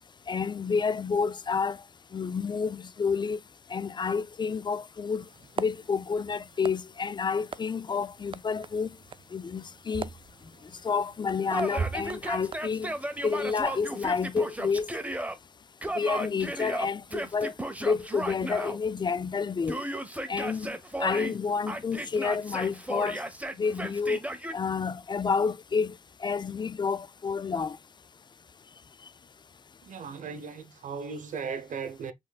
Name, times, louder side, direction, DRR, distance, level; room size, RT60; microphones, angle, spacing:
voice 1, 0.3-1.8 2.1-3.4 3.7-5.3 5.6-8.9 9.3-10.1 10.8-12.9 13.2-14.9 16.0-17.5 17.8-19.8 20.3-20.7 21.0-23.2 23.6-24.2 24.5-25.9 26.2-27.8, left 5 dB, 35° left, 0.4 m, -29 dB
sound 1, 5.2-13.8, right 5 dB, 40° right, 0.4 m, -41 dB
Yell, 11.5-15.4 15.8-18.8 19.7-21.4 21.7-24.6, right 1 dB, 10° right, 1.0 m, -35 dB
voice 2, 29.8-32.1, right 5 dB, 70° right, 0.8 m, -37 dB
5.2 x 3.7 x 2.3 m
cardioid pair, 55°, 13 cm